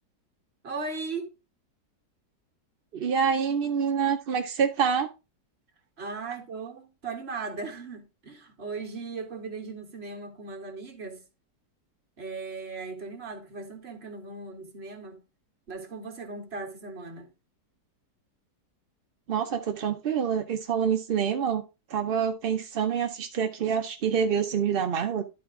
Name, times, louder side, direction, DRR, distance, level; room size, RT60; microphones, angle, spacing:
voice 1, 0.6-1.3 6.0-11.2 12.2-15.2 15.7-17.3, right 4 dB, 40° right, 1.5 m, -38 dB
voice 2, 2.9-5.1 19.3-21.6 21.9-25.2, right 7 dB, 65° right, 0.5 m, -26 dB
11.0 x 4.3 x 3.7 m
omnidirectional pair, 1.8 m